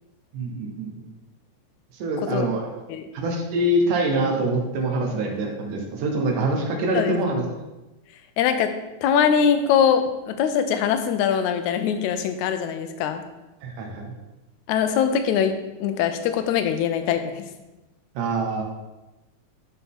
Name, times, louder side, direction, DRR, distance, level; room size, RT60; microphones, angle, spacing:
voice 1, 0.3-1.1 2.0-2.7 3.1-7.4 13.6-14.1 18.2-18.6, right 1 dB, 90° right, 1 dB, 2.6 m, -25 dB
voice 2, 8.4-8.7 9.0-13.2 14.7-15.6 15.8-17.5, left 8 dB, 80° left, 8 dB, 1.9 m, -22 dB
11.5 x 4.2 x 3.6 m, 1.0 s
omnidirectional pair, 3.5 m